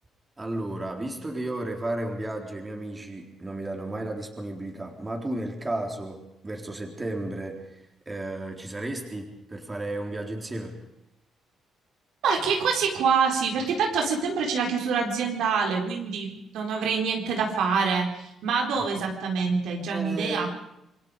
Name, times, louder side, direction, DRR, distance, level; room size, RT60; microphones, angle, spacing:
voice 1, 0.4-10.8 19.9-20.5, right 1 dB, 20° right, 2 dB, 4.1 m, -33 dB
voice 2, 12.2-20.5, right 5 dB, 80° right, 1 dB, 4.3 m, -26 dB
27.5 x 21.0 x 5.1 m, 0.84 s
cardioid pair, 90°, 0 cm